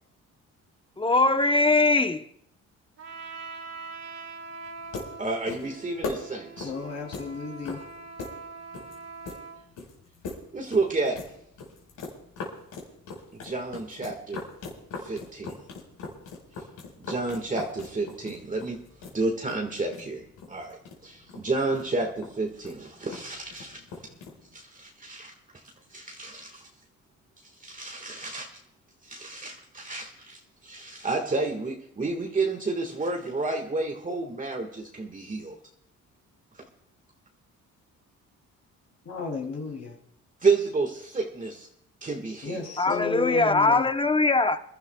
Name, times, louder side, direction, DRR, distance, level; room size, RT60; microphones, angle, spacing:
voice 1, 1.0-2.2 42.8-44.6, left 3 dB, 15° left, 0.8 m, -21 dB
Trumpet, 3.0-9.6, right 4 dB, 60° right, 2.4 m, -43 dB
sound 1, 4.6-24.5, left 3 dB, 80° left, 4.7 m, -42 dB
voice 2, 5.2-6.7 10.5-11.2 13.3-14.4 15.0-15.5 17.0-18.8 19.1-23.8 24.5-25.3 25.9-26.6 27.6-28.5 29.0-35.5 40.4-41.7 42.0-42.7, right 3 dB, 25° right, 1.7 m, -30 dB
voice 3, 6.6-7.8 39.0-40.0 42.4-43.9, left 4 dB, 55° left, 3.0 m, -33 dB
27.5 x 12.0 x 2.3 m
cardioid pair, 90°, 30 cm